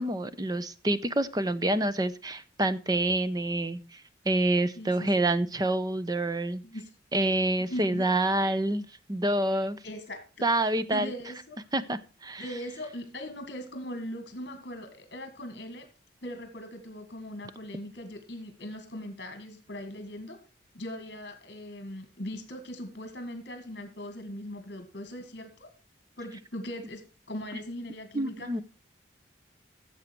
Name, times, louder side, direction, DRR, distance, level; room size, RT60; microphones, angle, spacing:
voice 1, 0.0-6.6 7.1-9.8 10.4-11.1 11.7-12.4 28.1-28.6, right 1 dB, 20° right, 14 dB, 0.6 m, -27 dB
voice 2, 4.8-5.2 6.6-6.9 7.7-8.1 9.8-10.4 10.9-11.6 12.4-15.9 16.2-20.4 20.7-25.7 26.2-28.5, equal, 55° left, 7 dB, 1.9 m, -40 dB
14.0 x 7.3 x 4.5 m, 0.33 s
head